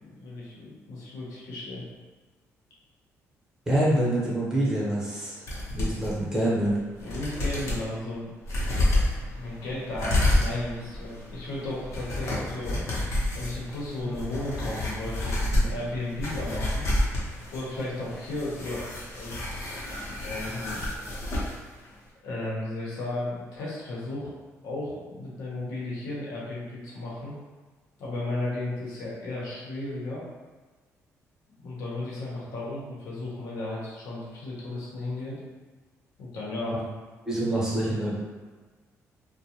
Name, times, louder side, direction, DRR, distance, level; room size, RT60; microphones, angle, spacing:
voice 1, 0.0-1.8 7.0-8.3 9.3-12.8 13.3-16.9 17.5-19.6 20.2-21.1 22.2-24.3 24.6-27.4 28.0-30.2 31.6-35.4 36.2-36.8, left 2 dB, 90° left, -5 dB, 0.9 m, -34 dB
voice 2, 3.7-5.4 5.7-6.7 14.0-14.1 37.2-38.2, right 1 dB, 10° right, -7 dB, 0.9 m, -26 dB
sound 1, 5.5-6.1 6.6-6.7 7.0-7.8 8.4-21.6 21.9-22.0, left 1 dB, 60° left, 0.8 m, -29 dB
2.5 x 2.1 x 2.8 m, 1.3 s
cardioid pair, 110°, 6 cm